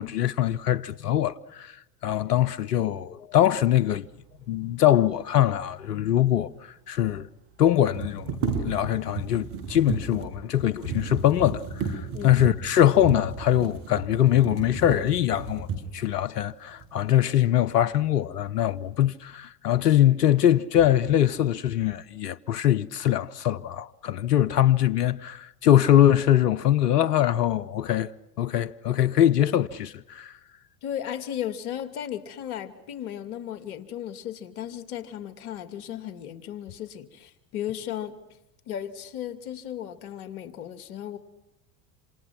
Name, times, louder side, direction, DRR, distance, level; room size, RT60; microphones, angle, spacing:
voice 1, 0.0-1.8 2.0-4.1 4.5-7.3 7.6-15.7 15.9-28.1 28.4-30.3, left 11 dB, 85° left, 0.9 m, -23 dB
sound 1, 6.3-6.4 6.6-6.7 7.7-16.1 16.8-16.9 17.4-18.0 18.3-18.9, right 5 dB, 60° right, 6.9 m, -34 dB
voice 2, 30.8-38.1 38.7-41.2, left 10 dB, 70° left, 2.6 m, -35 dB
28.0 x 27.5 x 5.9 m
hypercardioid pair, 85°, 46 cm